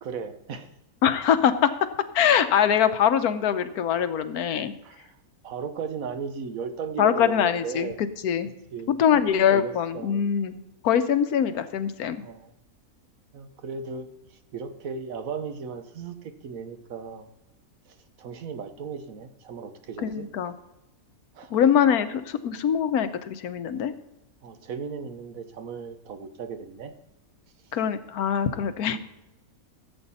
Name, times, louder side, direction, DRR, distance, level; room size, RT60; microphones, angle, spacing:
voice 1, 0.0-0.7 4.8-5.2 5.4-8.0 8.7-9.0 9.3-10.2 12.2-12.5 13.3-17.3 17.9-20.3 21.3-21.6 24.4-26.9, right 5 dB, 65° right, 9 dB, 1.4 m, -36 dB
voice 2, 1.0-1.7 2.1-4.7 7.0-7.9 8.2-8.5 9.0-12.2 20.0-20.5 21.5-23.9 27.7-29.0, left 8 dB, 80° left, 11 dB, 1.3 m, -23 dB
15.0 x 8.1 x 4.1 m, 0.94 s
omnidirectional pair, 1.6 m